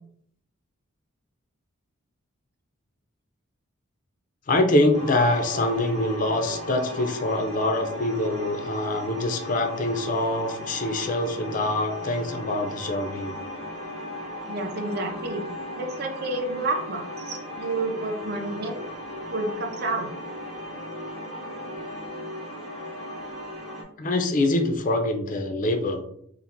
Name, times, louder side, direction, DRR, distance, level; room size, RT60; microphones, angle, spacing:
voice 1, 4.5-13.3 24.0-26.0, left 1 dB, 40° left, 4 dB, 0.4 m, -24 dB
sound 1, 4.9-23.8, left 1 dB, 30° right, 0.8 m, -36 dB
voice 2, 14.5-15.4 15.8-18.9 19.3-20.1, right 2 dB, 45° right, 3 dB, 0.4 m, -30 dB
3.0 x 2.5 x 2.5 m, 0.68 s
head